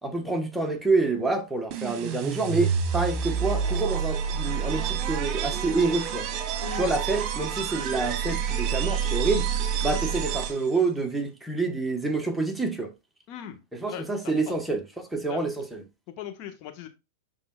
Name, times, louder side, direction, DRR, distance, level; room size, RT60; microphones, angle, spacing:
voice 1, 0.0-6.3 6.7-9.5 9.8-12.9 13.7-15.8, right 3 dB, 5° right, 1.4 m, -27 dB
sound 1, 1.7-10.8, right 7 dB, 40° right, 1.5 m, -28 dB
voice 2, 13.3-13.6 13.9-14.5 15.3-15.4 16.1-16.9, left 10 dB, 50° left, 1.4 m, -39 dB
11.0 x 3.7 x 2.4 m
hypercardioid pair, 100°, 0 cm